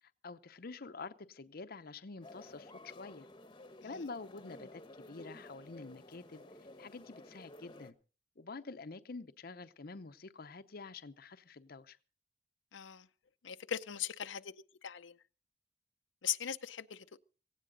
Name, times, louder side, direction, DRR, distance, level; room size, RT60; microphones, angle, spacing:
voice 1, 0.0-3.3 3.8-4.8 5.1-7.9 8.4-12.0, left 3 dB, 55° left, 11 dB, 0.7 m, -48 dB
sound 1, 2.2-7.9, left 1 dB, 25° left, 1.0 m, -54 dB
voice 2, 12.7-13.1 13.4-14.5 14.8-15.2 16.2-17.2, left 10 dB, 90° left, 9 dB, 0.7 m, -39 dB
17.5 x 16.0 x 3.9 m, 0.37 s
head